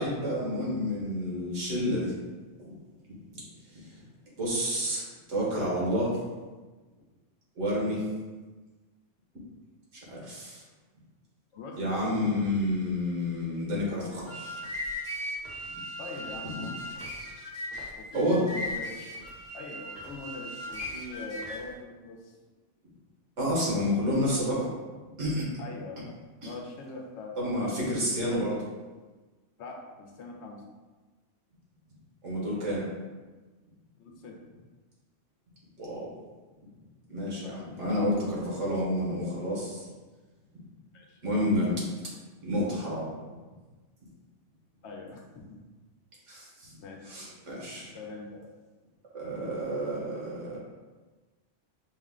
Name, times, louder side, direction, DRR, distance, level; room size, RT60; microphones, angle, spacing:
voice 1, 0.0-2.1 3.3-3.4 4.4-5.0 5.3-6.2 7.6-8.0 10.1-10.6 11.8-14.6 18.1-18.4 23.4-24.7 25.1-25.5 26.4-26.5 27.4-28.6 32.2-32.8 35.8-36.1 37.1-39.9 41.2-41.8 42.4-43.1 46.3-46.7 47.1-47.9 49.1-50.6, equal, 85° right, -5 dB, 1.6 m, -29 dB
voice 2, 11.5-12.2 16.0-16.7 18.0-19.2 19.5-22.3 25.6-26.0 26.4-28.0 29.6-30.6 34.0-34.4 37.4-37.9 40.9-41.2 44.8-45.6 46.8-47.1 47.7-48.5, left 3 dB, 70° left, 1 dB, 0.9 m, -43 dB
sound 1, 14.1-21.7, left 1 dB, 40° left, 0.9 m, -38 dB
5.3 x 2.1 x 3.6 m, 1.3 s
omnidirectional pair, 1.2 m